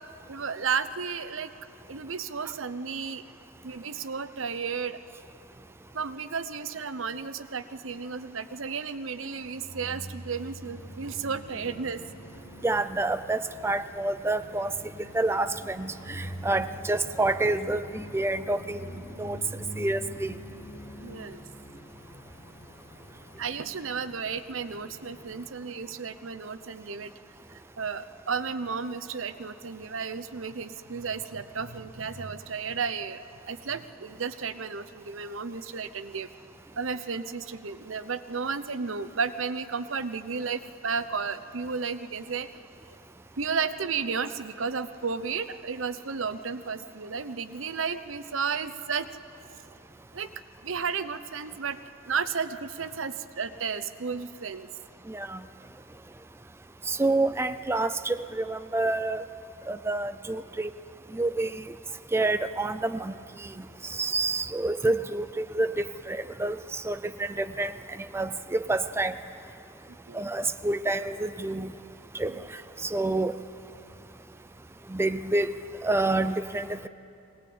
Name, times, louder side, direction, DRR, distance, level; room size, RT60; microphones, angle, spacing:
voice 1, 0.3-1.5 1.9-3.2 3.6-5.0 5.9-12.0 21.0-21.4 23.4-27.1 27.5-36.3 36.8-42.5 43.4-49.1 50.1-50.3 50.6-51.8 52.0-54.7 70.1-70.3, right 5 dB, 75° right, 12 dB, 0.9 m, -33 dB
sound 1, 9.3-25.5, equal, 65° left, 2.1 m, -45 dB
voice 2, 12.6-14.7 15.1-18.8 19.2-19.4 19.8-20.3 55.1-55.4 56.9-59.2 59.7-60.7 61.1-61.6 62.1-63.1 63.9-67.7 68.1-69.1 70.1-71.7 72.1-72.3 72.8-73.3 74.9-75.5 75.8-76.9, right 2 dB, 15° right, 11 dB, 0.5 m, -28 dB
22.5 x 18.5 x 8.7 m, 2.6 s
head